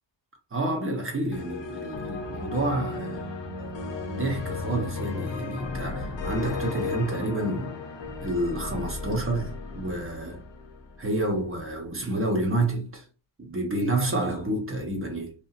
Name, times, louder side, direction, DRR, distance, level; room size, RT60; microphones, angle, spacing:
voice 1, 0.5-3.2 3.6-3.7 4.0-7.8 8.2-10.4 11.0-13.0 13.4-15.3, right 1 dB, 25° right, 0.8 m, -29 dB
sound 1, 1.3-11.4, left 3 dB, 70° left, 0.7 m, -35 dB
2.8 x 2.4 x 2.4 m
wide cardioid pair, 135°, 46 cm